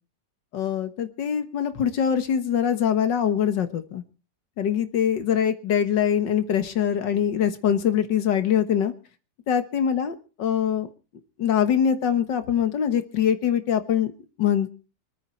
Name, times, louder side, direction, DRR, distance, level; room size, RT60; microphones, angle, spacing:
voice 1, 0.5-4.0 4.6-8.9 9.5-10.9 11.4-14.1 14.4-14.7, left 8 dB, 70° left, 10 dB, 2.0 m, -23 dB
25.0 x 9.4 x 4.4 m, 0.35 s
omnidirectional pair, 2.0 m